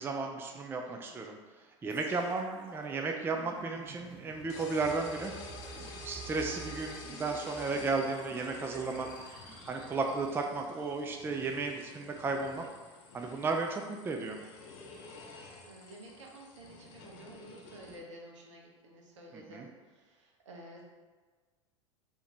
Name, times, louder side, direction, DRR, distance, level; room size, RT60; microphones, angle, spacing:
voice 1, 0.0-1.4 1.8-5.3 6.0-9.1 9.4-12.6 13.1-14.4 19.3-19.7, right 3 dB, 15° right, 3 dB, 0.4 m, -34 dB
voice 2, 0.9-1.3 15.1-20.8, right 1 dB, 70° right, -1 dB, 1.0 m, -52 dB
sound 1, 1.9-12.0 12.6-12.7, right 4 dB, 35° right, 0.7 m, -51 dB
sound 2, 4.5-18.0, left 3 dB, 55° left, 0.7 m, -50 dB
4.4 x 2.8 x 3.3 m, 1.4 s
hypercardioid pair, 85°, 16 cm